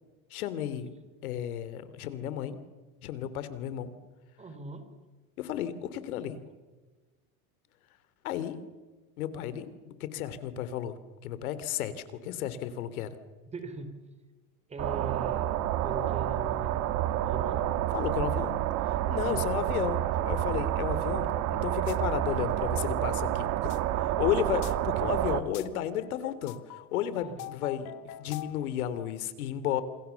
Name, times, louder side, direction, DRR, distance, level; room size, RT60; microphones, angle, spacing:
voice 1, 0.3-0.9 1.2-2.6 3.0-3.9 5.4-6.4 8.2-8.6 9.2-11.0 11.2-13.2 17.9-18.6 18.9-20.0 20.2-29.8, left 10 dB, 80° left, 13 dB, 3.1 m, -33 dB
voice 2, 4.4-4.9 13.5-13.9 14.7-15.5 15.8-17.7 19.3-19.4 27.2-27.5, right 2 dB, 15° right, 9 dB, 3.7 m, -41 dB
sound 1, 14.8-25.4, right 12 dB, 40° right, 2.2 m, -29 dB
sound 2, 21.9-22.0 22.3-28.7, left 15 dB, 40° left, 1.7 m, -46 dB
29.5 x 28.0 x 7.0 m, 1.3 s
supercardioid pair, 150°, 42 cm